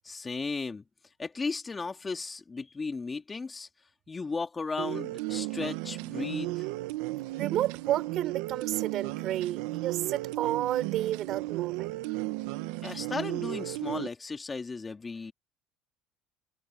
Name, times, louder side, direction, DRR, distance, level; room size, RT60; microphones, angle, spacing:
voice 1, 0.0-0.8 1.2-3.7 4.1-6.6 12.8-15.3, left 4 dB, 20° left, 2.7 m, -35 dB
sound 1, 4.8-14.1, right 20 dB, 80° right, 1.6 m, -34 dB
voice 2, 7.4-11.9, right 13 dB, 60° right, 6.6 m, -31 dB
supercardioid pair, 100°, 0 cm